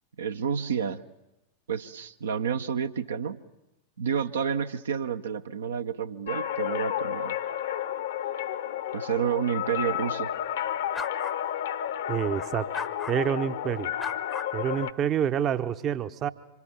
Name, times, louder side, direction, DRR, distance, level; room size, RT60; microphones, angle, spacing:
voice 1, 0.2-1.0 1.7-3.4 4.0-7.4 8.9-10.3, right 7 dB, 65° right, 8 dB, 0.8 m, -30 dB
sound 1, 6.3-14.9, left 10 dB, 60° left, 1.0 m, -31 dB
sound 2, 10.9-11.4 12.3-13.2 14.0-14.9, left 4 dB, 15° left, 0.8 m, -37 dB
voice 2, 12.1-12.7 13.1-13.9 14.5-16.3, right 9 dB, 30° right, 12 dB, 0.8 m, -27 dB
26.0 x 25.0 x 7.5 m, 0.94 s
figure-of-eight pair, 90°, 0 cm